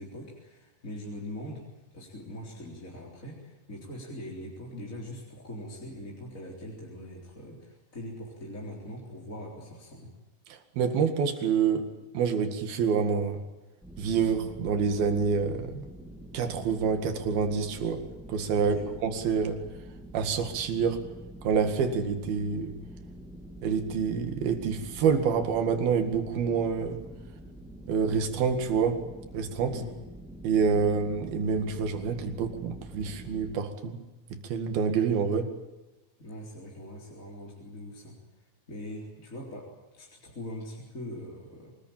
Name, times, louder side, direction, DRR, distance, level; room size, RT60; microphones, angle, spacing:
voice 1, 0.0-1.6 1.9-10.1 18.5-18.9 29.7-30.0 36.2-38.2 38.7-39.7 39.9-41.7, left 1 dB, 20° left, -2 dB, 3.9 m, -42 dB
voice 2, 10.5-11.9 12.1-13.5 14.0-15.9 16.3-18.0 18.3-18.8 19.0-19.6 20.1-21.0 21.4-22.7 23.6-27.0 27.9-29.0 29.3-29.8 30.4-34.0 34.3-35.5, right 6 dB, 80° right, 7 dB, 3.9 m, -27 dB
sound 1, 13.8-33.6, right 1 dB, ahead, 1.4 m, -46 dB
25.0 x 20.0 x 8.8 m, 1.1 s
omnidirectional pair, 4.3 m